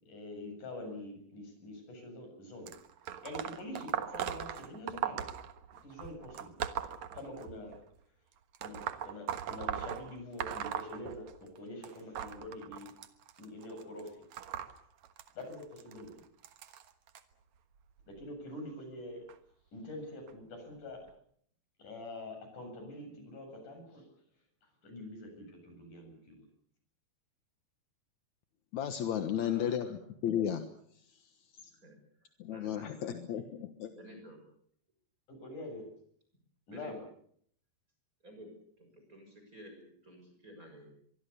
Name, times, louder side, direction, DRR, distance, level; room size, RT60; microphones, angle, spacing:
voice 1, 0.0-2.7 3.2-5.2 5.8-6.6 7.1-7.8 8.6-12.9 13.4-14.1 15.4-16.1 18.1-19.2 19.7-21.0 21.8-24.1 24.6-26.4 35.3-35.8 36.7-37.0, left 1 dB, 45° left, 4 dB, 8.7 m, -45 dB
sound 1, 2.7-7.8 8.5-11.6 11.8-17.2 18.0-18.2 19.3-19.4 20.3-20.4 21.1-21.2, right 9 dB, 60° right, 2.0 m, -39 dB
voice 2, 28.7-30.7 32.4-33.9, left 9 dB, 65° left, 8 dB, 2.0 m, -34 dB
voice 3, 29.4-29.9 31.8-31.9 32.5-33.5 33.9-34.4 36.7-36.9 38.2-38.5 38.8-40.9, equal, 20° right, 4 dB, 6.7 m, -52 dB
24.0 x 23.5 x 6.9 m, 0.64 s
omnidirectional pair, 5.0 m